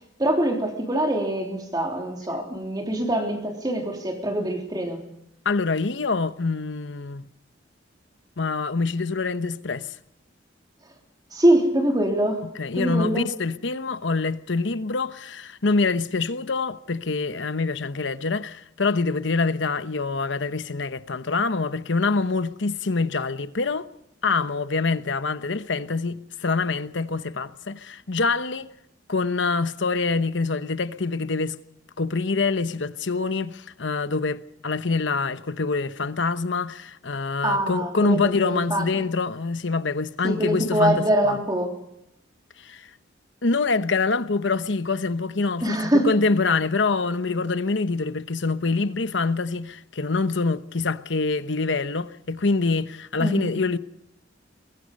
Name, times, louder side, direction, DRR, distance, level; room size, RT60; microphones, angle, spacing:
voice 1, 0.2-5.0 11.3-12.4 12.7-13.3 37.4-39.0 40.2-41.8 45.6-46.1 53.2-53.5, right 1 dB, 20° right, 3.5 m, -24 dB
voice 2, 5.4-7.3 8.4-9.9 12.6-23.9 24.2-28.7 29.1-31.6 32.0-41.4 42.6-42.9 43.4-53.8, left 4 dB, 75° left, 1.0 m, -25 dB
22.5 x 22.0 x 5.4 m
head